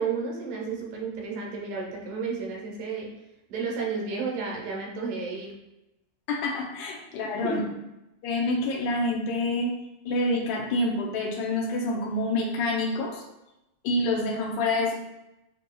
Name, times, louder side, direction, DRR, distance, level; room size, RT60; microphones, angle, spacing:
voice 1, 0.0-3.1 3.5-5.5 7.4-7.7, right 5 dB, 85° right, -2 dB, 2.5 m, -32 dB
voice 2, 6.3-7.6 8.2-9.7 10.1-13.2 13.8-14.9, left 2 dB, 75° left, -1 dB, 1.7 m, -27 dB
7.5 x 2.8 x 2.2 m, 0.93 s
omnidirectional pair, 3.5 m